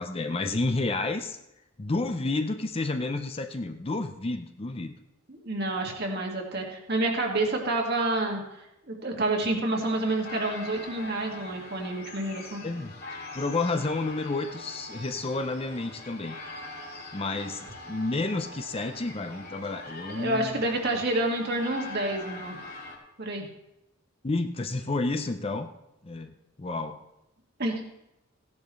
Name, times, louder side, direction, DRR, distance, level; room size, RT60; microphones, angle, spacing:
voice 1, 0.0-1.4 1.8-4.9 12.6-13.0 13.3-16.4 17.1-20.6 24.2-25.7 26.0-27.0, left 3 dB, 25° left, 7 dB, 0.6 m, -30 dB
voice 2, 5.3-8.4 8.9-12.6 20.1-22.6 23.2-23.5 27.6-27.8, right 2 dB, 50° right, 1 dB, 2.0 m, -28 dB
sound 1, 9.7-23.0, left 2 dB, 50° left, 2.1 m, -43 dB
16.0 x 10.5 x 3.2 m, 0.87 s
head